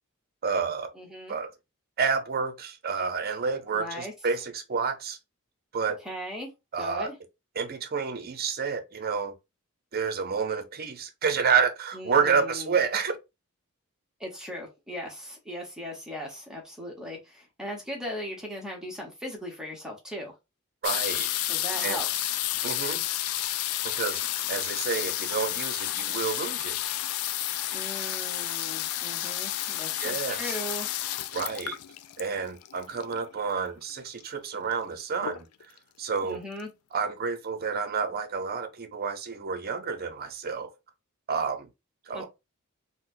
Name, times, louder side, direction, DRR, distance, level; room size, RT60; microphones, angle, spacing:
voice 1, 0.4-0.9 1.3-1.5 2.0-5.2 5.7-6.0 6.7-7.1 7.6-9.3 9.9-13.2 20.8-21.3 21.8-22.0 22.6-23.0 23.8-24.2 24.5-26.8 30.0-30.6 31.3-31.8 32.2-35.5 36.0-36.4 36.9-40.7 41.3-41.7 42.1-42.3, right 5 dB, 45° right, 0.6 m, -29 dB
voice 2, 0.9-1.3 3.7-4.1 6.0-6.5 6.8-7.1 11.9-12.8 14.2-20.3 21.5-22.4 27.7-30.9 36.2-36.7 42.1-42.3, equal, 5° right, 0.8 m, -38 dB
sound 1, 20.8-33.4 34.2-34.3 34.5-34.9 35.2-35.8 36.3-36.4 36.6-36.7, left 13 dB, 80° left, 0.3 m, -31 dB
4.0 x 2.1 x 2.5 m
head